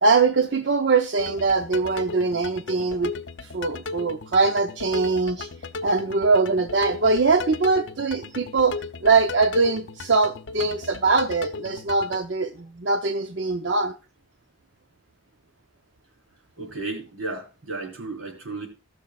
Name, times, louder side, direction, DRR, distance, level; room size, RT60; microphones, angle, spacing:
voice 1, 0.0-3.1 3.4-5.5 5.8-13.9, right 4 dB, 60° right, 7 dB, 0.7 m, -22 dB
sound 1, 1.2-12.2, left 4 dB, 60° left, 0.6 m, -36 dB
voice 2, 16.6-18.7, right 3 dB, 85° right, 0 dB, 4.2 m, -33 dB
18.5 x 6.3 x 2.3 m, 0.33 s
head